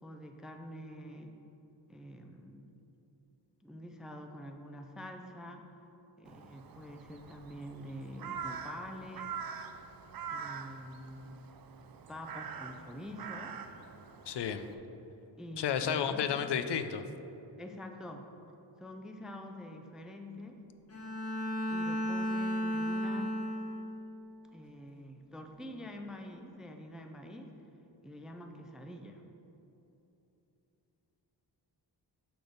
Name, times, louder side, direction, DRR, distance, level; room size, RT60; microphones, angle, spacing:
voice 1, 0.0-1.3 1.9-2.7 3.6-5.6 6.2-9.4 10.3-11.6 12.1-13.6 15.4-16.5 17.6-18.3 18.8-20.6 21.7-23.4 24.5-27.5 28.0-29.2, left 1 dB, ahead, 4 dB, 0.3 m, -46 dB
Crow, 6.3-14.7, right 6 dB, 55° right, 0.5 m, -44 dB
voice 2, 14.3-14.7 15.6-17.0, left 8 dB, 75° left, 9 dB, 0.5 m, -32 dB
Bowed string instrument, 20.9-24.1, equal, 35° left, 1.3 m, -34 dB
6.8 x 6.0 x 5.1 m, 3.0 s
wide cardioid pair, 175°, 42 cm